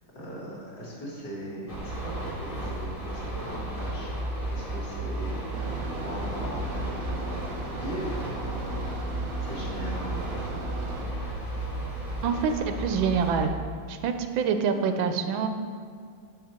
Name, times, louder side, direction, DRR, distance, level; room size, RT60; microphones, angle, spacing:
voice 1, 0.1-4.1 4.5-5.7 6.0-8.9 9.4-10.6, equal, 55° left, -6 dB, 2.3 m, -39 dB
sound 1, 1.7-13.5, right 1 dB, 25° left, 1.0 m, -33 dB
sound 2, 5.5-11.0, right 2 dB, 60° right, 0.9 m, -39 dB
voice 2, 12.2-13.5 13.9-15.5, right 6 dB, 90° right, 7 dB, 1.4 m, -26 dB
7.3 x 5.7 x 4.4 m, 2.1 s
omnidirectional pair, 2.1 m